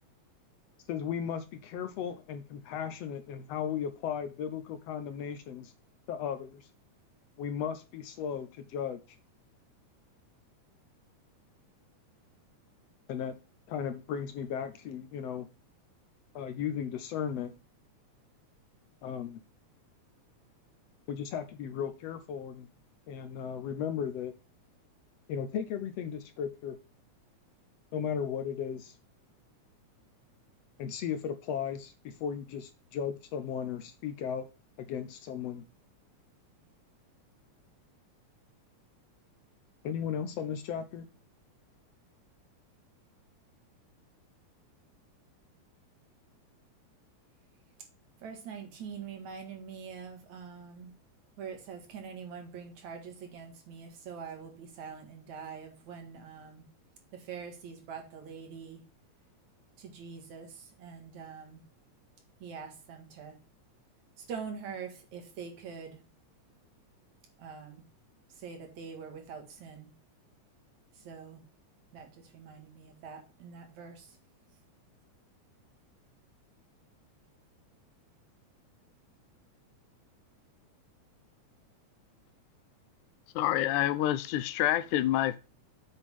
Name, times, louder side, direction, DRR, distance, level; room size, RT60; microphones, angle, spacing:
voice 1, 0.9-5.7 6.1-6.7 7.4-9.0 13.1-13.3 13.7-15.5 16.4-17.5 19.0-19.4 21.1-22.7 23.1-24.3 25.3-26.8 27.9-29.0 30.8-34.5 34.8-35.6 39.8-41.1, left 8 dB, 70° left, 1.7 m, -36 dB
voice 2, 48.2-50.9 51.4-56.6 57.1-58.8 59.8-61.6 62.4-63.4 64.2-66.0 67.4-67.8 68.3-69.9 70.9-71.4 71.9-74.2, right 6 dB, 75° right, 3.2 m, -44 dB
voice 3, 83.4-85.4, left 13 dB, 85° left, 2.1 m, -27 dB
7.9 x 6.4 x 3.5 m
omnidirectional pair, 3.4 m